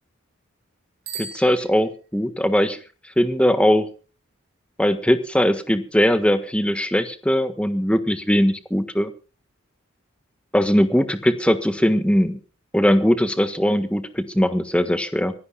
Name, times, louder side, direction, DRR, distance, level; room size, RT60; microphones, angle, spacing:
Bicycle bell, 1.0-2.3, right 5 dB, 50° right, 8.0 m, -38 dB
voice 1, 1.2-2.8 3.2-3.9 4.8-9.1 10.5-12.4 12.7-15.3, equal, 5° left, 10 dB, 1.5 m, -20 dB
25.0 x 16.0 x 2.3 m, 0.35 s
head